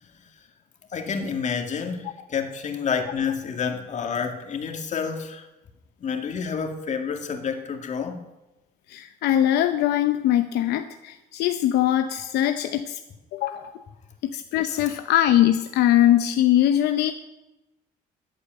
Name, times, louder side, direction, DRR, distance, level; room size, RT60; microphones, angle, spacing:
voice 1, 0.9-5.5 6.0-8.2 14.7-14.8, left 6 dB, 45° left, 4 dB, 2.3 m, -29 dB
voice 2, 8.9-13.0 13.3-13.7 14.2-17.1, left 12 dB, 80° left, 8 dB, 0.8 m, -21 dB
14.0 x 8.5 x 9.1 m, 1.0 s
cardioid pair, 110°, 17 cm